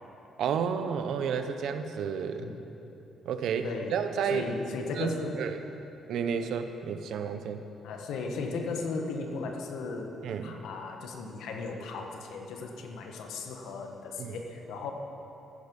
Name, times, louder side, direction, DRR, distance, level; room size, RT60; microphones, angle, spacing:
voice 1, 0.4-2.5 3.3-4.5 5.0-5.1 5.4-5.6 6.1-7.6 10.2-10.6 14.2-14.4, right 7 dB, 75° right, 8 dB, 0.9 m, -31 dB
voice 2, 3.6-4.0 4.2-5.4 6.4-6.5 7.8-14.9, left 3 dB, 85° left, 3 dB, 1.4 m, -36 dB
15.0 x 10.5 x 5.4 m, 3.0 s
cardioid pair, 135°, 0 cm